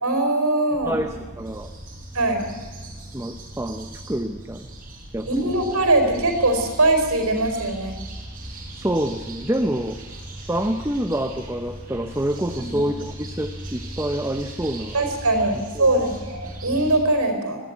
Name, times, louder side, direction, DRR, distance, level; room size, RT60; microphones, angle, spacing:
voice 1, 0.0-0.9 2.1-2.5 5.3-7.9 12.7-12.8 14.9-17.6, right 2 dB, 75° right, 5 dB, 4.4 m, -21 dB
sound 1, 0.7-17.0, right 1 dB, 40° right, 5.9 m, -38 dB
voice 2, 0.8-1.7 3.1-4.7 5.1-5.5 8.7-10.0 10.5-14.9 15.8-15.9, right 1 dB, 10° right, 7 dB, 0.8 m, -27 dB
22.0 x 15.0 x 9.3 m, 1.4 s
head